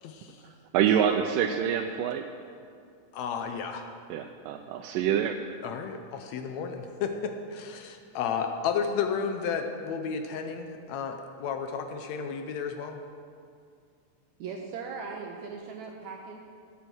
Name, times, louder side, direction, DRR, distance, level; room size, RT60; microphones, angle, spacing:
voice 1, 0.0-0.4 1.0-1.1 3.1-3.8 5.6-13.0, left 6 dB, 75° left, 6 dB, 1.7 m, -32 dB
voice 2, 0.7-2.3 4.1-5.4, right 9 dB, 90° right, 4 dB, 2.2 m, -26 dB
voice 3, 14.4-16.4, right 5 dB, 70° right, 1 dB, 1.9 m, -39 dB
13.0 x 8.3 x 6.2 m, 2.3 s
omnidirectional pair, 3.7 m